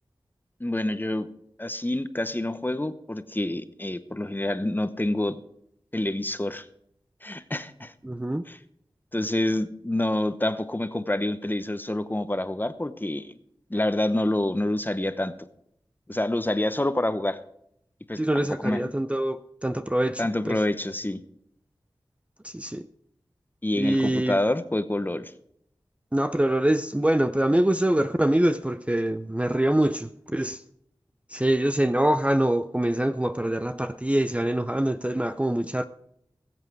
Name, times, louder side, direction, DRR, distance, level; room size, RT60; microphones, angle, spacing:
voice 1, 0.6-1.3 1.6-5.4 5.9-6.7 7.2-7.9 8.5-8.6 9.1-13.3 13.7-15.3 16.1-17.4 18.1-18.8 20.2-21.2 23.6-25.3, left 1 dB, 20° left, 0.9 m, -27 dB
voice 2, 8.0-8.5 18.2-20.6 22.4-22.9 23.7-24.4 26.1-30.6 31.3-35.8, right 1 dB, 15° right, 0.5 m, -24 dB
20.0 x 8.2 x 4.7 m
wide cardioid pair, 55°, 9 cm